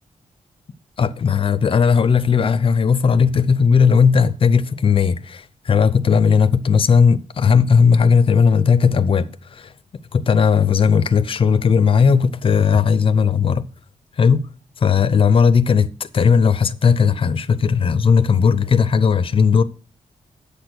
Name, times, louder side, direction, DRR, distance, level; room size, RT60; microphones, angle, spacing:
voice 1, 1.0-9.7 10.1-13.7 14.2-14.5 14.8-19.6, left 6 dB, 40° left, 0.6 m, -16 dB
8.4 x 6.3 x 6.7 m
wide cardioid pair, 175°, 14 cm